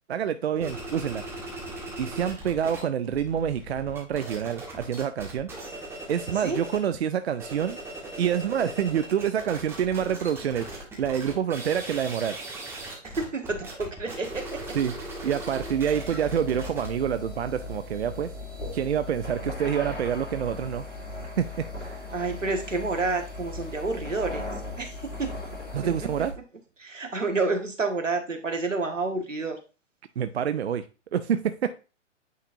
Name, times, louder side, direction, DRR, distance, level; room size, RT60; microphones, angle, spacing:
voice 1, 0.1-1.4 2.0-5.5 6.1-7.8 8.2-12.4 14.7-15.0 15.2-18.3 18.7-20.9 21.4-21.5 21.8-22.0 25.7-26.3 30.2-30.8 31.1-31.7, right 8 dB, 60° right, 11 dB, 0.5 m, -27 dB
sound 1, 0.6-2.8 3.1-6.9 7.3-18.8, right 1 dB, 5° right, 1.4 m, -39 dB
voice 2, 13.0-14.8 22.1-24.5 24.8-24.9 25.2-25.3 25.8-26.1 26.8-29.6, right 3 dB, 80° right, 5 dB, 1.4 m, -29 dB
sound 2, 15.6-26.3, left 2 dB, 75° left, 2.1 m, -38 dB
9.2 x 4.1 x 2.6 m, 0.33 s
figure-of-eight pair, 120°, 37 cm